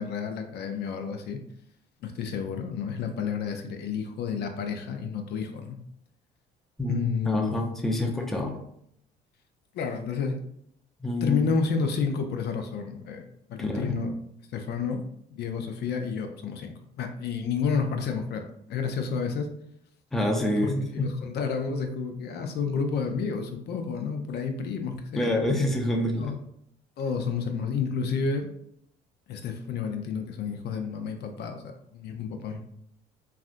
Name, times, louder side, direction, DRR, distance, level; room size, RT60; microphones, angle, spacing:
voice 1, 0.0-1.4 2.0-5.8 6.9-7.5 8.0-8.1 9.7-10.4 11.2-14.1 14.5-15.0 15.3-19.5 20.9-25.3 26.2-26.3 27.0-28.5 29.3-32.6, left 5 dB, 60° left, 5 dB, 0.5 m, -30 dB
voice 2, 6.8-8.5 11.0-11.4 13.6-14.0 20.1-21.1 25.2-26.3, left 1 dB, ahead, 2 dB, 0.5 m, -27 dB
3.2 x 2.4 x 2.5 m, 0.71 s
cardioid pair, 95°, 20 cm